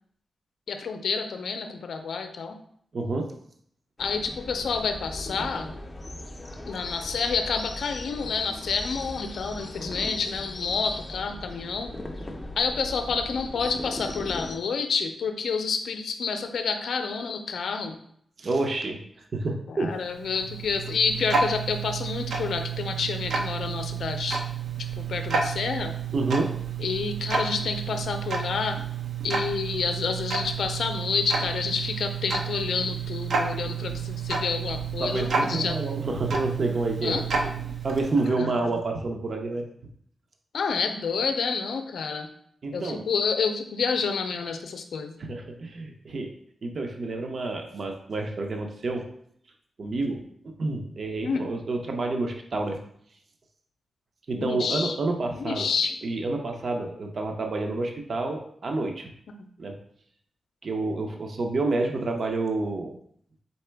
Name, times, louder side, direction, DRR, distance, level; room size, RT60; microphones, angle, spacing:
voice 1, 0.7-2.6 4.0-5.7 6.7-11.9 12.6-18.0 19.7-24.5 25.0-25.9 26.8-28.8 29.2-35.8 37.0-37.2 38.4-38.5 40.5-42.3 42.7-45.1 51.2-51.5 54.4-55.0 55.4-56.0 59.4-59.5, left 5 dB, 80° left, 7 dB, 0.5 m, -29 dB
voice 2, 2.9-3.3 18.4-20.0 26.1-26.6 35.0-37.5 37.8-39.7 42.6-43.1 45.2-46.3 46.6-49.1 49.8-52.8 54.3-55.7 56.0-59.1 59.6-59.8 60.6-63.0, right 2 dB, 50° right, 3 dB, 0.5 m, -29 dB
sound 1, 4.0-14.6, left 1 dB, 20° left, 0.5 m, -38 dB
Tick-tock, 20.0-38.3, right 5 dB, 90° right, 0.6 m, -31 dB
4.2 x 3.7 x 3.3 m, 0.65 s
wide cardioid pair, 150°, 0 cm